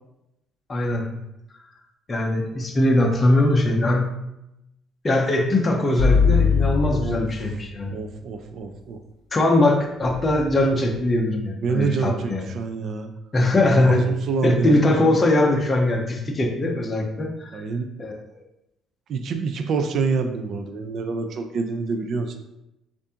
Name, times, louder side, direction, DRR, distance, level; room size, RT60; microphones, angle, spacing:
voice 1, 0.7-1.1 2.1-4.1 5.0-8.0 9.3-12.4 13.3-14.0 14.4-17.6 18.0-18.1, left 1 dB, 20° left, 1 dB, 0.6 m, -21 dB
sound 1, 6.0-7.8 10.0-11.0, left 5 dB, 80° left, 0.6 m, -21 dB
voice 2, 6.9-7.5 7.9-9.0 11.6-13.1 13.8-15.2 17.5-17.9 19.1-22.4, right 4 dB, 45° right, 6 dB, 0.4 m, -27 dB
7.0 x 2.5 x 2.8 m, 0.89 s
cardioid pair, 180°, 0 cm